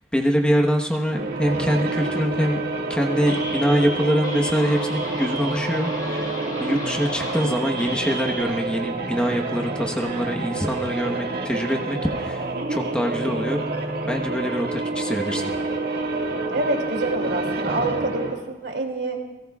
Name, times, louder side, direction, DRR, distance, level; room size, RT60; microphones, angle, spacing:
voice 1, 0.1-2.6 2.9-15.5, equal, 5° left, 1 dB, 1.2 m, -24 dB
sound 1, 1.0-18.5, right 2 dB, 60° right, 2.0 m, -28 dB
sound 2, 3.3-8.4, equal, 25° left, 4.3 m, -34 dB
voice 2, 16.5-19.2, right 2 dB, 75° right, 1 dB, 2.8 m, -27 dB
29.0 x 18.5 x 2.4 m, 1.0 s
head